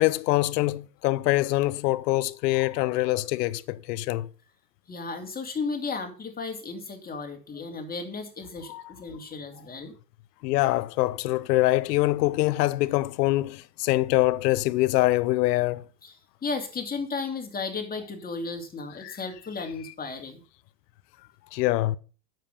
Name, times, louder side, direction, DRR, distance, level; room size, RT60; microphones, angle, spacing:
voice 1, 0.0-4.3 8.7-8.9 10.4-15.8 19.0-19.2 19.8-19.9 21.5-22.0, left 18 dB, 75° left, 0.9 m, -24 dB
voice 2, 4.9-10.0 16.0-16.1 16.4-20.4, left 4 dB, 20° left, 2.9 m, -34 dB
10.0 x 7.9 x 5.5 m
supercardioid pair, 115°, 49 cm